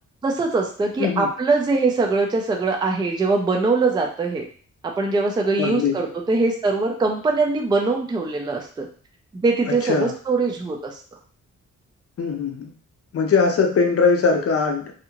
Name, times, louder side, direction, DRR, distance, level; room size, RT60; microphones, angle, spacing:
voice 1, 0.2-4.4 5.0-8.9 9.3-11.0, right 3 dB, 15° right, 2 dB, 0.3 m, -22 dB
voice 2, 5.6-5.9 9.8-10.1 12.2-12.7 13.1-14.9, left 5 dB, 50° left, 3 dB, 0.5 m, -20 dB
2.7 x 2.4 x 2.8 m, 0.43 s
wide cardioid pair, 175°, 31 cm